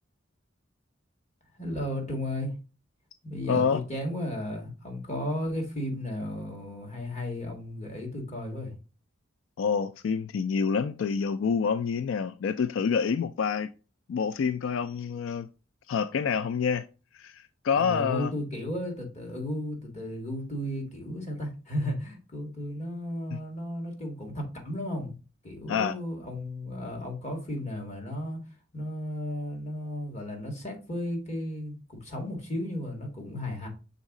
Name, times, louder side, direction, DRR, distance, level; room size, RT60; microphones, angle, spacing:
voice 1, 1.6-2.5 3.2-8.7 17.7-25.1 25.4-28.4 28.7-33.7, left 1 dB, 35° left, 1.9 m, -34 dB
voice 2, 3.5-3.8 9.6-13.7 14.1-15.5 15.9-16.8 17.1-18.3 23.3-23.4 25.7-25.9, left 6 dB, 85° left, 0.3 m, -27 dB
6.3 x 4.0 x 3.7 m
head